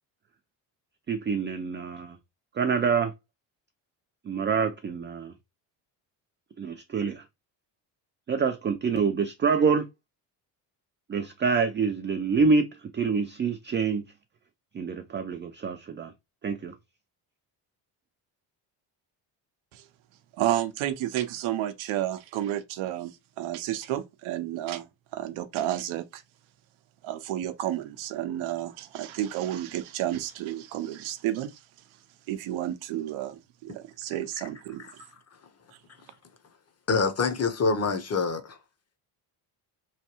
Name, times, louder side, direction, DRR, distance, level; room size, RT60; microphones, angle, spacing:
voice 1, 1.1-2.2 2.5-3.1 4.3-5.3 6.6-7.2 8.3-9.9 11.1-14.0 14.7-16.1 16.4-16.7, right 5 dB, 25° right, 0.4 m, -26 dB
voice 2, 20.4-23.1 23.4-24.8 25.1-26.2 27.0-31.6 32.3-34.8, right 12 dB, 70° right, 0.7 m, -31 dB
voice 3, 36.9-38.6, left 4 dB, 30° left, 0.8 m, -26 dB
3.2 x 2.2 x 2.9 m
supercardioid pair, 65°, 49 cm